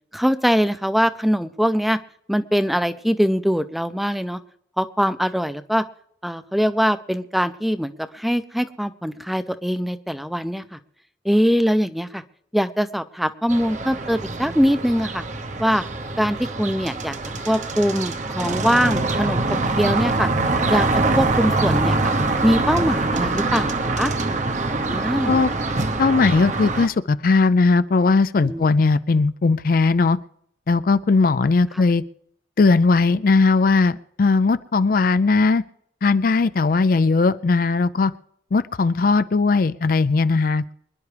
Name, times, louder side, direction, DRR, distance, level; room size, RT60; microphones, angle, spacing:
voice 1, 0.1-2.0 2.3-4.4 4.8-5.8 6.2-10.8 11.2-12.2 12.5-15.2 15.6-15.8 16.2-17.2 17.5-19.4 19.8-20.3 20.7-20.9 21.2-22.0 22.4-24.1 24.9-25.4 28.4-28.6, equal, ahead, 11 dB, 0.6 m, -22 dB
sound 1, 13.5-26.9, right 2 dB, 45° right, 0.9 m, -24 dB
voice 2, 26.0-30.2 30.7-32.0 32.6-35.6 36.0-38.1 38.5-40.7, left 4 dB, 50° left, 14 dB, 0.4 m, -18 dB
25.5 x 11.0 x 3.4 m, 0.70 s
head